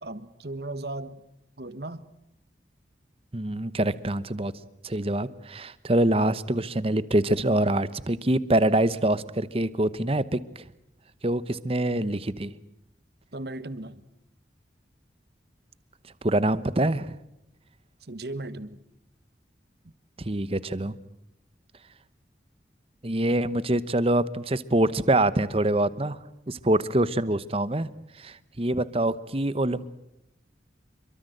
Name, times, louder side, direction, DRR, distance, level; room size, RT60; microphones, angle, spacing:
voice 1, 0.0-1.2 1.6-2.0 13.3-14.0 18.0-18.8 19.8-19.9, right 2 dB, 60° right, 14 dB, 1.3 m, -36 dB
voice 2, 3.3-4.5 4.8-10.6 11.2-12.5 16.2-17.2 20.2-20.9 23.0-26.2 26.5-27.9 28.2-29.9, right 1 dB, 30° right, 15 dB, 1.0 m, -25 dB
27.0 x 23.5 x 8.0 m, 0.82 s
head